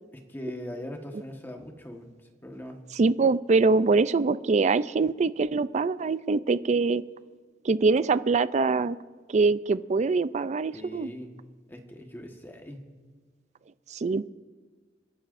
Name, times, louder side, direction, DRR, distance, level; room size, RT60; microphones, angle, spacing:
voice 1, 0.1-2.1 2.4-2.8 10.7-11.3 11.7-12.9, left 1 dB, 10° left, 3 dB, 1.3 m, -40 dB
voice 2, 2.9-7.0 7.6-9.0 9.3-11.1 13.9-14.3, right 4 dB, 40° right, 16 dB, 0.4 m, -24 dB
29.5 x 11.0 x 2.6 m, 1.5 s
head